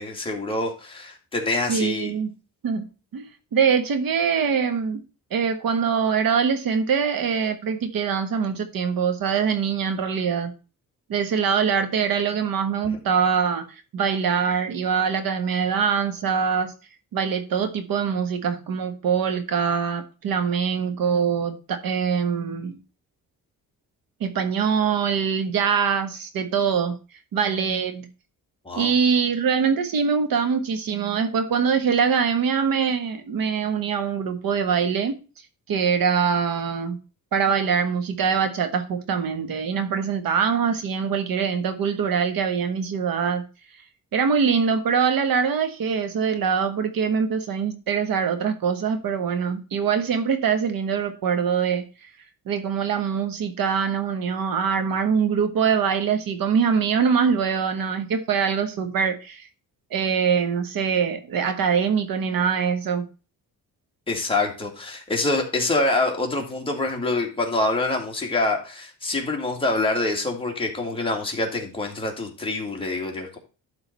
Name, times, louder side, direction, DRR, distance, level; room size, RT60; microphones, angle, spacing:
voice 1, 0.0-2.1 28.6-28.9 64.1-73.4, left 2 dB, 15° left, 2.2 m, -26 dB
voice 2, 1.7-2.3 2.6-2.9 3.1-5.0 5.3-10.5 11.1-16.7 17.1-22.8 24.2-27.0 27.3-28.1 28.7-35.2 35.7-37.0 37.3-43.4 44.1-51.8 52.5-59.5 59.9-63.1, right 6 dB, 75° right, 1.5 m, -23 dB
12.0 x 3.9 x 5.3 m
wide cardioid pair, 155°, 35 cm